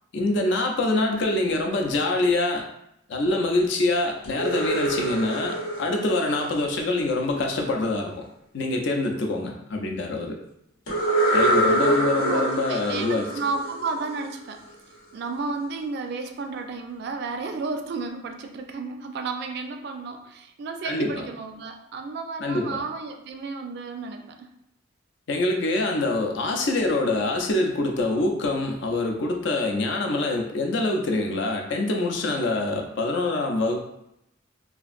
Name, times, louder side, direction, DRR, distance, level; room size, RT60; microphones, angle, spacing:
voice 1, 0.1-2.7 3.1-8.2 8.5-10.4 11.3-13.3 20.8-21.2 22.4-22.8 25.3-33.8, left 2 dB, 60° left, 2 dB, 0.5 m, -25 dB
sound 1, 4.2-7.2 10.9-14.6, right 1 dB, 80° left, 0.8 m, -25 dB
voice 2, 11.5-14.6 15.1-24.5, right 4 dB, 55° right, 5 dB, 0.3 m, -32 dB
2.8 x 2.5 x 2.4 m, 0.79 s
head